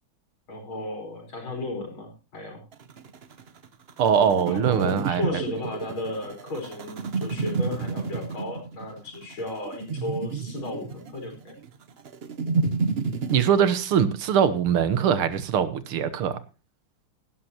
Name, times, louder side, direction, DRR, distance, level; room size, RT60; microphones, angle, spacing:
voice 1, 0.5-2.6 4.5-11.5, left 2 dB, 70° left, 2 dB, 5.2 m, -34 dB
sound 1, 2.7-13.4, right 4 dB, 65° right, 0.6 m, -30 dB
voice 2, 4.0-5.2 13.3-16.4, right 8 dB, 85° right, 13 dB, 2.0 m, -22 dB
17.0 x 11.5 x 2.9 m, 0.32 s
omnidirectional pair, 2.4 m